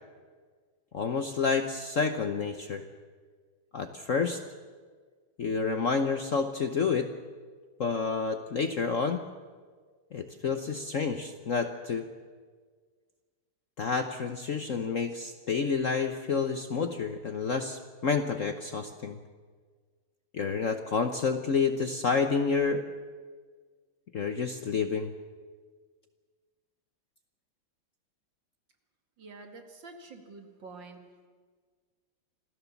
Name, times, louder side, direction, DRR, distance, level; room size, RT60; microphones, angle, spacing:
voice 1, 0.9-2.8 3.7-4.4 5.4-7.1 7.8-9.2 10.1-12.0 13.8-19.2 20.3-22.8 24.1-25.1, left 5 dB, 50° left, 7 dB, 1.0 m, -29 dB
voice 2, 29.2-31.0, right 3 dB, 60° right, 4 dB, 2.8 m, -47 dB
26.0 x 16.0 x 7.2 m, 1.6 s
omnidirectional pair, 2.3 m